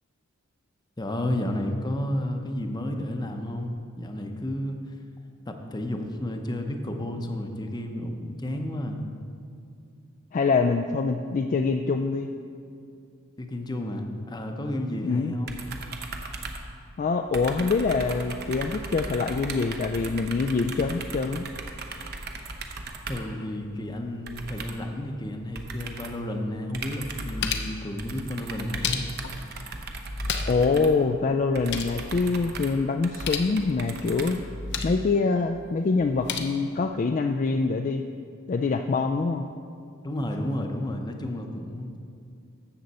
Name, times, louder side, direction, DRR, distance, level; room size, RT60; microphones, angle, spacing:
voice 1, 1.0-4.8 5.5-9.1 13.4-15.6 23.1-29.1 40.0-42.0, left 1 dB, 20° left, 4 dB, 0.7 m, -31 dB
voice 2, 10.3-12.3 15.0-15.3 17.0-21.5 30.5-34.4 34.8-38.1 38.5-39.5, left 4 dB, 35° left, 5 dB, 0.3 m, -25 dB
sound 1, 15.5-17.1 17.3-23.4 24.3-24.9 25.6-26.2 26.7-27.5 28.0-34.8, right 3 dB, 45° right, 0.8 m, -38 dB
sound 2, 26.4-26.5 26.9-27.8 28.5-29.4 30.0-30.7 31.0-31.1 31.4-32.0 33.0-33.5 34.4-35.0 36.0-36.4, left 5 dB, 55° left, 0.7 m, -32 dB
13.0 x 7.7 x 4.2 m, 2.4 s
head